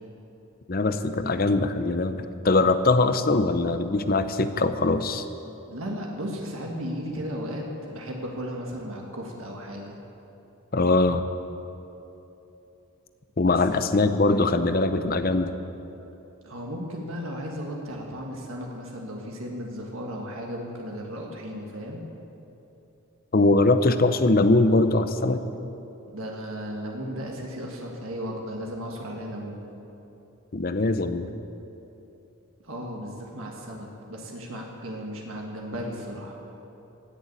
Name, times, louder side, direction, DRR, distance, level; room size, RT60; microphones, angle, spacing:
voice 1, 0.7-5.2 10.7-11.2 13.4-15.5 23.3-25.4 30.5-31.3, left 2 dB, 40° left, 10 dB, 0.6 m, -22 dB
voice 2, 5.7-10.0 13.5-13.9 16.4-22.0 26.1-29.7 32.6-36.4, equal, 70° right, 0 dB, 1.6 m, -35 dB
17.0 x 6.9 x 8.5 m, 3.0 s
head